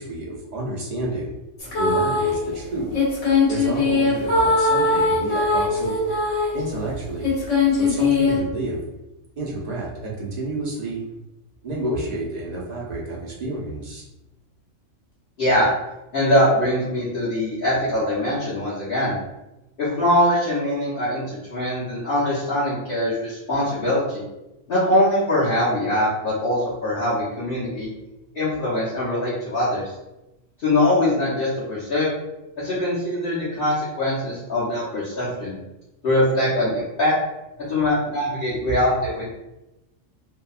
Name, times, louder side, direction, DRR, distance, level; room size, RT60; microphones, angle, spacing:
voice 1, 0.0-1.3 1.8-3.0 3.5-5.9 6.5-7.3 7.8-8.8 9.4-11.0 11.6-14.0 37.6-37.8 38.7-38.8, right 2 dB, 55° right, -4 dB, 0.4 m, -29 dB
sound 1, 1.6-2.4 2.9-6.6 7.2-8.4, left 3 dB, 75° left, 1.2 m, -20 dB
voice 2, 15.4-15.7 16.1-19.1 19.8-24.2 24.7-27.9 28.3-29.8 30.6-32.2 32.6-35.5 36.0-37.1 37.7-39.3, left 1 dB, 55° left, -11 dB, 0.9 m, -22 dB
2.7 x 2.1 x 2.3 m, 0.96 s
omnidirectional pair, 1.3 m